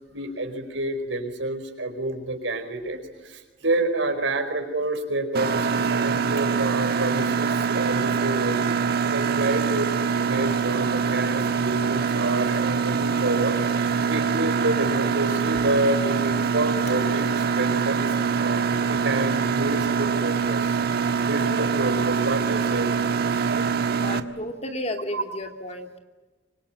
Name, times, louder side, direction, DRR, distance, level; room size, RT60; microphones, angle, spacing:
voice 1, 0.1-18.1 18.4-23.7 25.1-25.2, right 2 dB, 90° right, 6 dB, 4.8 m, -29 dB
Mechanisms, 5.3-24.2, right 6 dB, 55° right, 1.4 m, -24 dB
voice 2, 23.9-26.0, left 1 dB, 35° left, 5 dB, 2.6 m, -33 dB
25.5 x 23.5 x 9.0 m, 1.3 s
head